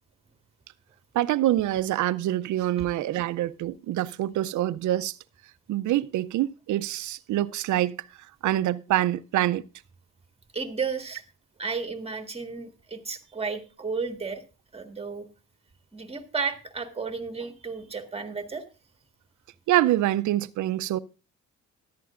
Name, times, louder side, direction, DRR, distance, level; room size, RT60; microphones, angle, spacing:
voice 1, 1.1-5.2 5.7-8.1 8.4-9.6 19.7-21.0, right 14 dB, 75° right, 0.6 m, -25 dB
voice 2, 10.5-11.2 11.6-14.4 14.7-15.2 15.9-18.6, right 5 dB, 20° right, 1.7 m, -33 dB
14.0 x 11.0 x 2.5 m
cardioid pair, 90°, 30 cm